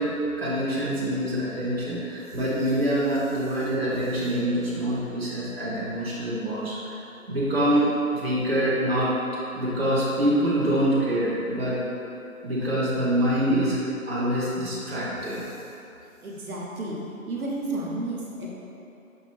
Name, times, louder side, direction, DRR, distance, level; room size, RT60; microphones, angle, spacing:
voice 1, 0.0-7.0 7.3-9.1 9.5-11.8 12.4-15.4, right 1 dB, 45° right, -8 dB, 0.6 m, -25 dB
voice 2, 16.2-17.0 17.3-18.5, right 2 dB, 75° right, -3 dB, 0.8 m, -31 dB
5.4 x 2.2 x 3.0 m, 2.9 s
figure-of-eight pair, 180°, 43 cm